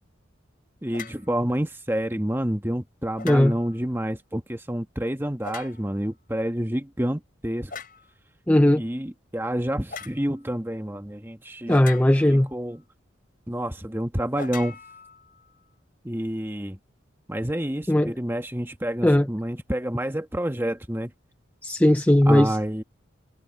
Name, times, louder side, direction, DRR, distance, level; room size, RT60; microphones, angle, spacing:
voice 1, 0.8-7.7 8.7-11.8 12.3-12.8 13.5-14.8 16.0-16.8 17.3-21.1 22.3-22.8, equal, 10° right, 1.4 m, -28 dB
sound 1, 0.9-1.3 3.2-3.8 5.4-6.1 7.7-8.1 9.9-10.2 11.7-12.4 14.3-15.5, left 5 dB, 45° left, 7.0 m, -40 dB
voice 2, 8.5-8.8 11.7-12.5 17.9-18.1 19.0-19.3 21.6-22.6, left 1 dB, 10° left, 0.4 m, -18 dB
head